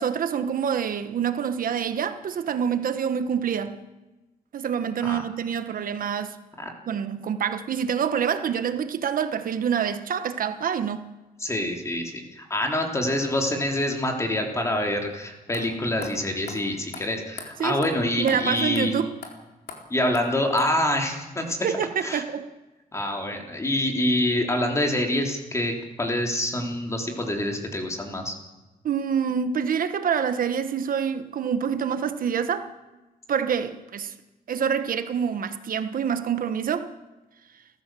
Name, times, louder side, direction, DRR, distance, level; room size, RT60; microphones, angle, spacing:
voice 1, 0.0-3.8 4.5-6.4 6.9-11.0 17.6-19.1 21.6-22.5 28.8-32.7 33.3-34.1 34.5-36.9, right 7 dB, 65° right, 1.2 m, -26 dB
voice 2, 11.4-18.9 19.9-21.7 22.0-22.2 22.9-28.3, left 1 dB, 20° left, 3.4 m, -26 dB
sound 1, 15.1-15.2 15.5-15.6 16.0-16.1 16.5-16.6 16.9-17.0 17.4-17.5 17.8-17.9 18.3-18.4 18.7-18.9 19.2-19.3 19.7-19.8 20.1-20.2 20.6-20.7, left 6 dB, 80° left, 3.9 m, -39 dB
30.0 x 14.5 x 7.6 m
wide cardioid pair, 155°, 16 cm